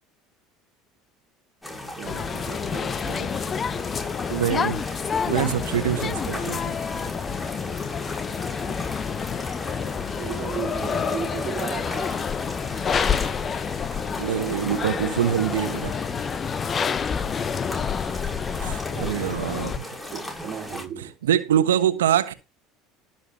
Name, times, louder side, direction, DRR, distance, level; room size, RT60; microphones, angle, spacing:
sound 1, 1.6-20.8, left 1 dB, 10° left, 6.8 m, -37 dB
sound 2, 2.0-19.8, left 7 dB, 35° left, 0.8 m, -28 dB
voice 1, 2.0-3.3 10.2-12.1 19.0-19.5 20.1-21.1, right 8 dB, 45° right, 2.2 m, -35 dB
voice 2, 4.3-4.8 5.3-6.7 14.2-15.9 18.6-19.9 21.0-22.3, right 10 dB, 80° right, 1.3 m, -24 dB
19.5 x 7.1 x 3.1 m
hypercardioid pair, 70°, 0 cm